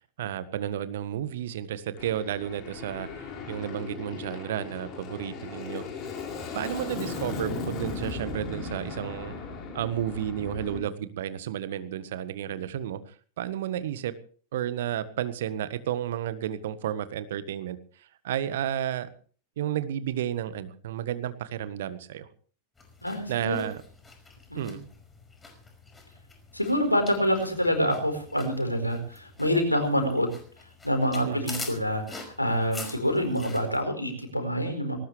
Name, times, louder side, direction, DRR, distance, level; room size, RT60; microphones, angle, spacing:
voice 1, 0.0-5.8 6.5-9.3 9.7-14.1 14.5-19.1 19.6-22.3 23.3-23.8 24.5-24.8 31.2-31.5, right 10 dB, 55° right, 13 dB, 1.5 m, -32 dB
Aircraft, 2.0-10.8, left 4 dB, 30° left, 6.2 m, -37 dB
sound 1, 22.8-33.8, left 3 dB, 10° left, 5.3 m, -45 dB
voice 2, 23.0-23.7 24.5-24.8 26.5-30.3 30.8-35.0, equal, 85° left, 6 dB, 4.7 m, -26 dB
20.0 x 18.5 x 3.4 m, 0.43 s
figure-of-eight pair, 90°, 0 cm